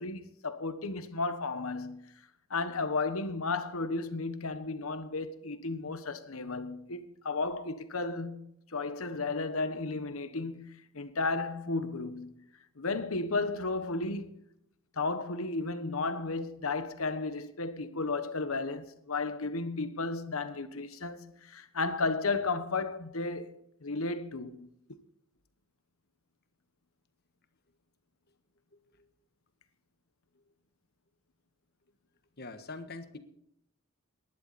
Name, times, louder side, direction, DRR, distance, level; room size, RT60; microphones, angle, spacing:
voice 1, 0.0-2.1 2.5-12.4 12.8-14.3 15.0-23.6 23.8-24.7, left 3 dB, 85° left, 1.3 m, -34 dB
voice 2, 32.4-33.2, left 3 dB, 50° left, 1.4 m, -42 dB
18.5 x 11.5 x 4.2 m
head